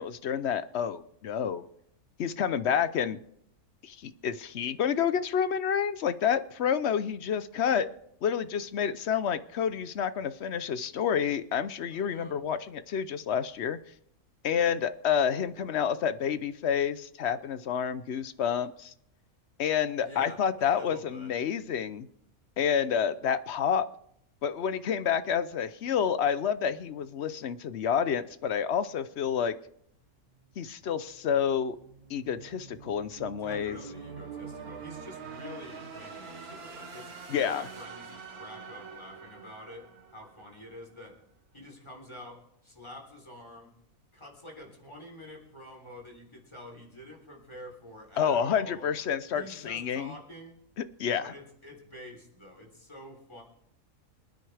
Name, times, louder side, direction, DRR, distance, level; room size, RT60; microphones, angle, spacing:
voice 1, 0.0-1.7 2.2-3.2 3.8-7.9 8.2-13.8 14.4-18.9 19.6-22.1 22.6-23.9 24.4-29.5 30.6-31.8 32.1-33.8 37.3-37.6 48.2-50.1 51.0-51.3, left 8 dB, 55° left, 13 dB, 0.9 m, -29 dB
voice 2, 11.9-12.4 20.0-21.3 33.4-41.2 41.5-43.7 44.1-48.9 49.3-50.6 51.2-53.4, left 1 dB, 20° left, 1 dB, 3.6 m, -47 dB
sound 1, 29.9-40.9, right 5 dB, 90° right, 1.9 m, -46 dB
26.0 x 9.4 x 3.4 m, 0.73 s
omnidirectional pair, 1.5 m